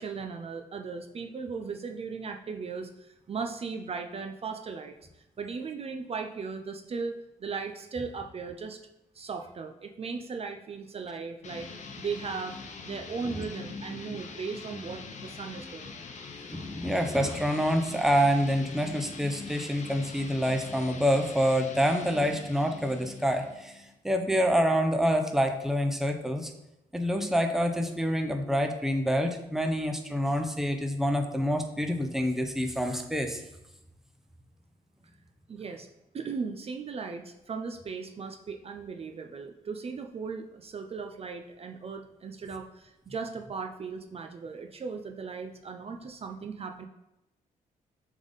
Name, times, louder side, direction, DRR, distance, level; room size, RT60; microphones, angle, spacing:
voice 1, 0.0-8.8 9.1-11.7 12.0-12.6 12.8-16.0 35.5-35.9 36.1-46.9, right 5 dB, 45° right, 4 dB, 0.6 m, -37 dB
sound 1, 11.4-23.9, left 4 dB, 55° left, 0.9 m, -43 dB
voice 2, 16.5-26.5 26.9-33.4, equal, 5° right, 5 dB, 0.7 m, -27 dB
6.9 x 3.6 x 4.0 m, 0.91 s
cardioid pair, 95°, 15 cm